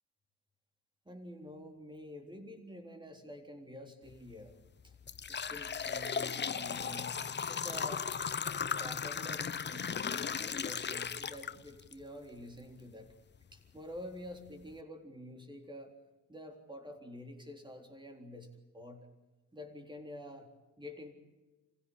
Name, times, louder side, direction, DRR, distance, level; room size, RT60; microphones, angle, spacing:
voice 1, 1.1-4.5 4.8-5.0 5.3-8.1 8.7-13.1 13.5-15.9 16.3-19.1 19.5-20.5 20.8-21.1, left 1 dB, 15° right, 4 dB, 3.8 m, -48 dB
sound 1, 4.1-4.3 4.8-11.9 12.4-12.5 13.3-13.4 14.0-14.1 14.5-14.7, left 6 dB, 35° left, 0.9 m, -36 dB
25.5 x 16.0 x 8.8 m, 1.1 s
cardioid pair, 90°, 31 cm